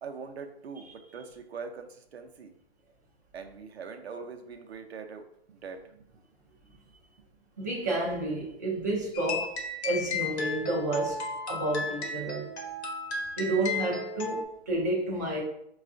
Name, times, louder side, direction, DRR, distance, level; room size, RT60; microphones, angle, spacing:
voice 1, 0.0-2.5 3.3-6.2 6.7-6.8 7.2-7.3, right 5 dB, 75° right, 0.6 m, -43 dB
voice 2, 7.6-9.6 9.8-12.5 13.4-15.4, right 2 dB, 20° right, 0.3 m, -30 dB
sound 1, 9.1-14.4, left 3 dB, 90° left, 0.9 m, -34 dB
4.8 x 2.4 x 2.5 m
hypercardioid pair, 155°, 32 cm